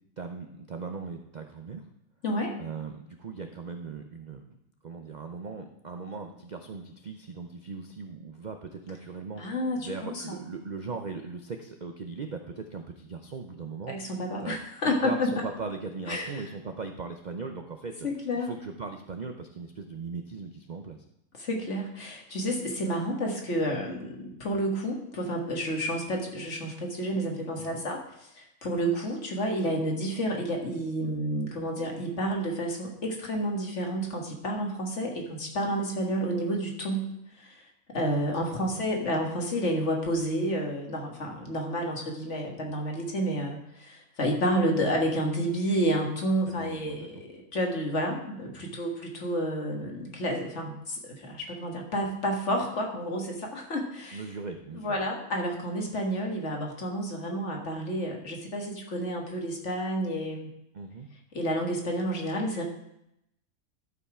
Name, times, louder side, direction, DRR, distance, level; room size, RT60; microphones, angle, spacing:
voice 1, 0.2-1.8 2.6-4.6 4.8-9.4 9.7-14.0 14.4-14.6 14.8-18.1 18.3-21.0 27.6-27.8 38.7-38.9 46.4-47.1 48.7-48.8 54.1-55.0 60.7-61.1, right 4 dB, 50° right, 5 dB, 0.5 m, -39 dB
voice 2, 9.4-10.4 13.9-15.3 16.1-16.4 18.0-18.5 21.4-28.0 28.3-37.1 37.4-37.6 37.9-54.2 54.7-60.5 61.3-62.6, equal, 55° left, 1 dB, 1.9 m, -30 dB
12.0 x 5.5 x 4.9 m, 0.81 s
omnidirectional pair, 1.5 m